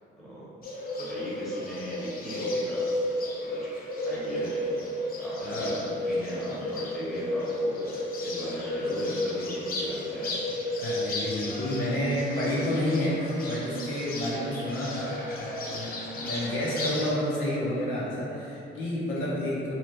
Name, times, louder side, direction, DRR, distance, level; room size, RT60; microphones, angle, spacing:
Bird, 0.6-17.1, left 1 dB, 50° left, 0.6 m, -33 dB
voice 1, 0.9-2.8 3.5-3.6 4.1-4.7 5.2-10.3, equal, ahead, -10 dB, 1.1 m, -38 dB
voice 2, 5.4-5.8 10.8-19.7, left 1 dB, 75° left, -7 dB, 0.8 m, -30 dB
2.9 x 2.4 x 3.1 m, 2.7 s
cardioid pair, 90°, 20 cm